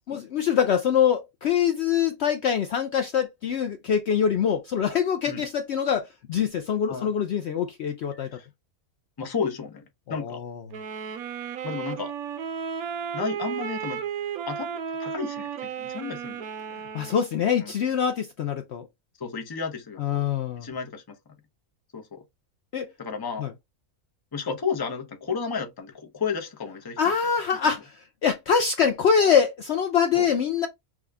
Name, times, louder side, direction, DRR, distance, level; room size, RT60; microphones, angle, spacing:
voice 1, 0.1-8.3 10.1-10.6 16.9-18.9 20.0-20.7 22.7-22.9 23.4-23.5 27.0-30.7, left 7 dB, 65° left, 0.7 m, -24 dB
voice 2, 8.1-8.5 9.2-10.4 11.6-12.1 13.1-14.0 14.5-16.8 17.6-17.7 19.2-20.0 20.6-21.2 21.9-22.2 23.0-23.5 24.3-27.0 30.1-30.3, left 5 dB, 20° left, 0.6 m, -32 dB
sound 1, 10.7-17.3, right 7 dB, 80° right, 1.2 m, -34 dB
6.3 x 2.3 x 3.4 m
omnidirectional pair, 1.5 m